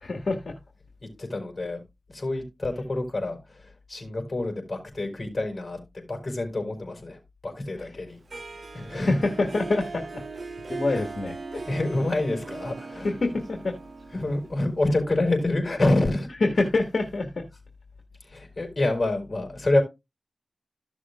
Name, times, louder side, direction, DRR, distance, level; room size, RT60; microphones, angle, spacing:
voice 1, 0.0-0.6 7.8-8.0 8.9-10.2 10.7-11.4 13.0-13.8 16.4-17.5, left 3 dB, 70° left, 1.7 m, -26 dB
voice 2, 1.2-1.8 2.1-8.2 8.7-9.2 10.9-11.0 11.7-13.1 14.1-16.3 18.2-19.8, left 2 dB, 40° left, 4.7 m, -27 dB
Harp, 8.3-15.2, right 4 dB, 60° right, 0.8 m, -39 dB
14.5 x 6.3 x 2.4 m
wide cardioid pair, 95°, 0 cm